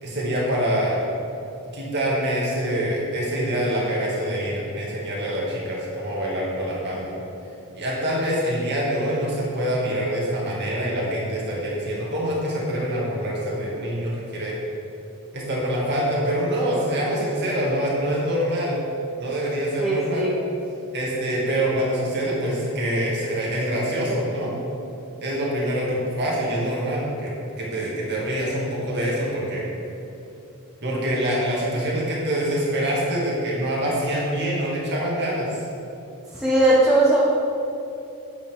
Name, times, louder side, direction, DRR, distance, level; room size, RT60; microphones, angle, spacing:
voice 1, 0.0-1.0 1.7-7.1 7.7-14.5 15.3-18.8 19.2-20.3 20.9-24.5 25.2-29.6 30.8-35.5, equal, 50° right, -5 dB, 2.0 m, -25 dB
voice 2, 19.8-20.3 36.3-37.2, right 1 dB, ahead, -9 dB, 1.2 m, -18 dB
8.8 x 8.5 x 3.5 m, 2.8 s
head